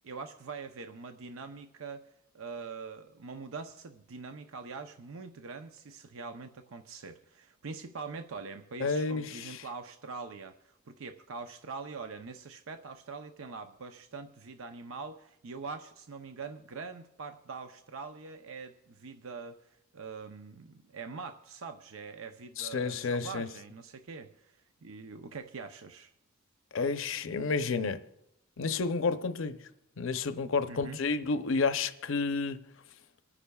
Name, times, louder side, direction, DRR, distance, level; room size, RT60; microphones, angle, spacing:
voice 1, 0.0-2.1 2.3-26.1 30.7-31.0, right 4 dB, 85° right, 0.6 m, -43 dB
voice 2, 8.8-9.6 22.6-23.5 26.7-28.0 28.6-29.7 30.0-32.6, left 4 dB, 70° left, 0.6 m, -30 dB
27.0 x 9.8 x 2.3 m
head